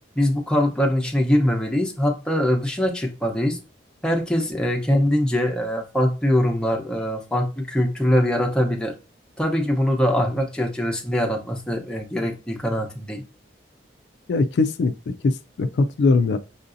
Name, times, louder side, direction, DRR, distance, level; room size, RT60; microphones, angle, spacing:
voice 1, 0.2-3.6 4.0-8.9 9.4-13.2, equal, 5° left, 0.7 m, -22 dB
voice 2, 14.3-16.4, left 3 dB, 70° left, 0.3 m, -21 dB
5.5 x 2.6 x 2.5 m
head